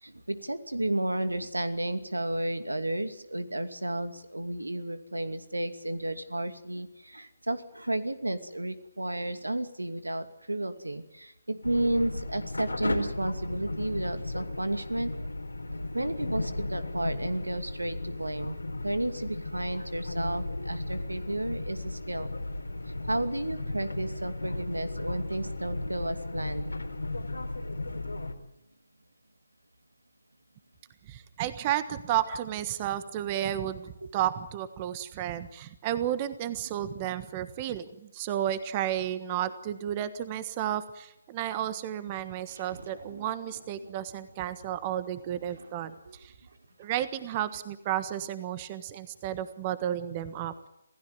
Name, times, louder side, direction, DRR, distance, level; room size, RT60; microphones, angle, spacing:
voice 1, 0.0-15.1 15.9-22.3 23.1-26.7 39.4-39.5, right 1 dB, 90° right, 11 dB, 2.5 m, -32 dB
sound 1, 11.6-28.3, left 2 dB, 85° left, 3.8 m, -35 dB
voice 2, 31.0-46.3 46.8-50.7, right 11 dB, 25° right, 14 dB, 1.4 m, -32 dB
sound 2, 42.5-47.9, right 3 dB, 65° right, 4.4 m, -53 dB
27.0 x 16.0 x 9.5 m, 0.84 s
figure-of-eight pair, 145°, 0 cm